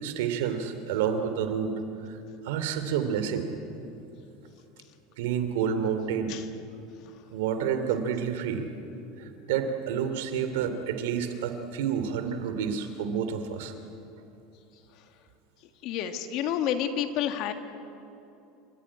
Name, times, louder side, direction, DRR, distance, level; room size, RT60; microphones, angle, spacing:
voice 1, 0.0-2.2 2.4-3.5 5.2-6.3 7.3-8.7 9.2-13.7, right 7 dB, 85° right, 9 dB, 2.7 m, -29 dB
voice 2, 15.8-17.5, left 9 dB, 55° left, 7 dB, 1.9 m, -29 dB
29.5 x 14.5 x 9.8 m, 2.8 s
supercardioid pair, 140°, 0 cm